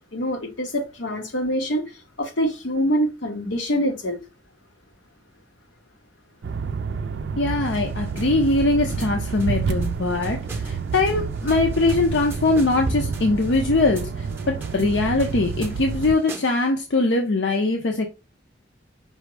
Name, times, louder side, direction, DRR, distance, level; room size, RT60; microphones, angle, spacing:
voice 1, 0.1-1.8 2.2-4.2, equal, 90° left, 1.2 m, -25 dB
sound 1, 6.4-16.2, right 5 dB, 65° right, 0.4 m, -29 dB
voice 2, 7.4-18.1, left 2 dB, 70° left, 0.7 m, -22 dB
sound 2, 7.6-16.7, right 2 dB, 10° right, 0.6 m, -39 dB
5.4 x 2.1 x 4.7 m
head